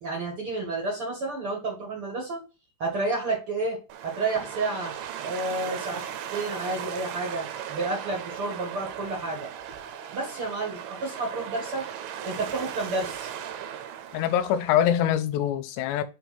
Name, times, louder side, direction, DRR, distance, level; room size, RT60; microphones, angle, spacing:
voice 1, 0.0-2.4 2.8-3.8 4.0-5.0 5.2-6.0 6.3-9.5 10.1-11.8 12.2-13.3, right 2 dB, 45° right, 1.9 m, -30 dB
sound 1, 3.9-15.1, right 9 dB, 80° right, 2.4 m, -37 dB
voice 2, 14.1-16.0, left 10 dB, 90° left, 2.9 m, -24 dB
5.8 x 4.5 x 4.2 m
omnidirectional pair, 4.9 m